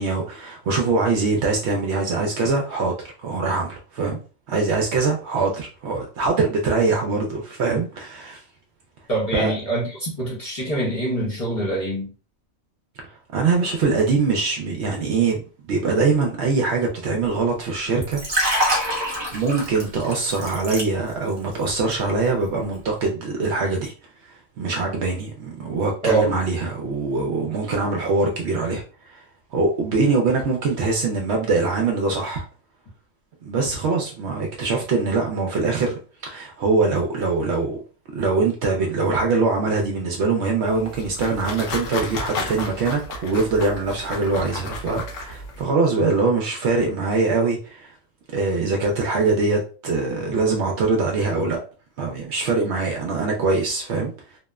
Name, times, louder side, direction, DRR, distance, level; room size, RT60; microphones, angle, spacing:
voice 1, 0.0-4.2 4.5-8.4 9.3-9.5 13.3-18.2 19.3-23.9 24.3-28.8 29.1-29.2 29.5-32.4 33.4-37.8 38.1-47.9 48.3-51.6 52.0-54.1, right 3 dB, 65° right, 0.7 m, -23 dB
voice 2, 9.1-12.1 26.0-26.3, right 2 dB, 35° left, 0.7 m, -24 dB
Liquid, 18.0-21.3 21.6-21.9, equal, 25° right, 0.6 m, -25 dB
sound 1, 40.7-45.6, left 2 dB, 70° left, 1.0 m, -33 dB
2.8 x 2.0 x 2.3 m
omnidirectional pair, 1.4 m